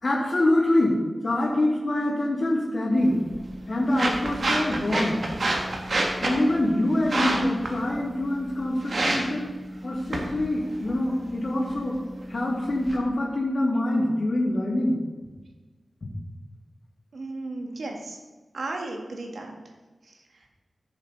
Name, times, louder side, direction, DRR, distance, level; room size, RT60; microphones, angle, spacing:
voice 1, 0.0-3.2 3.7-5.3 6.2-9.5 9.8-12.0 12.3-15.0 16.0-16.1, left 1 dB, 55° left, -3 dB, 2.5 m, -25 dB
sound 1, 3.0-13.0, right 2 dB, 60° right, 1.6 m, -30 dB
voice 2, 17.1-18.2 18.5-19.6 20.1-20.2, right 2 dB, 90° right, 2 dB, 1.7 m, -34 dB
14.5 x 7.2 x 4.0 m, 1.3 s
wide cardioid pair, 90°, 0 cm